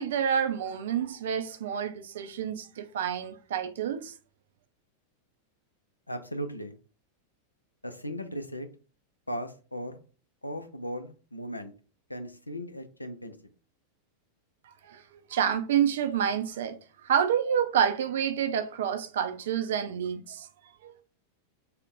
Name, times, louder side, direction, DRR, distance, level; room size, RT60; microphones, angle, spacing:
voice 1, 0.0-4.1 14.8-15.0 15.3-16.8 17.0-20.5 20.8-20.9, right 8 dB, 60° right, 0.4 m, -28 dB
voice 2, 6.1-6.8 7.8-8.7 9.3-10.0 10.4-11.7 12.1-13.4, equal, 85° left, 0.4 m, -37 dB
2.5 x 2.1 x 3.7 m
figure-of-eight pair, 90°, 0 cm